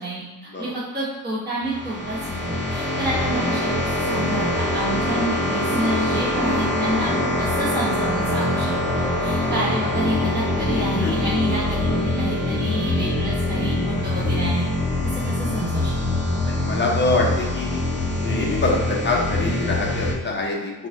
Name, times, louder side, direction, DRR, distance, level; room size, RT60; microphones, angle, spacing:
voice 1, 0.0-10.3 10.6-14.7 15.1-15.9, right 1 dB, 25° right, -8 dB, 1.2 m, -29 dB
sound 1, 1.6-20.1, left 1 dB, ahead, 1.2 m, -24 dB
voice 2, 16.4-17.8 18.2-20.7, left 2 dB, 25° left, -2 dB, 0.7 m, -24 dB
3.9 x 2.4 x 3.7 m, 1.1 s
cardioid pair, 95°, 43 cm